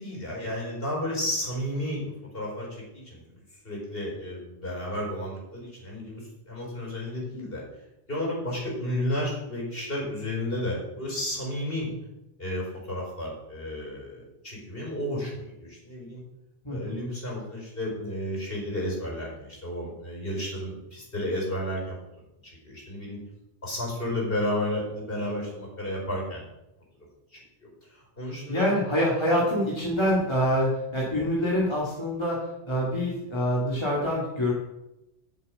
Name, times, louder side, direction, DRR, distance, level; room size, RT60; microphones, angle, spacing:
voice 1, 0.0-3.4 3.6-7.6 8.1-11.9 12.4-16.2 16.7-22.0 22.4-23.2 23.6-26.4 27.3-28.7, left 1 dB, 55° left, -3 dB, 4.7 m, -32 dB
voice 2, 16.6-17.0 28.5-34.5, equal, 25° left, -5 dB, 2.3 m, -26 dB
7.7 x 7.7 x 8.7 m, 0.92 s
omnidirectional pair, 1.2 m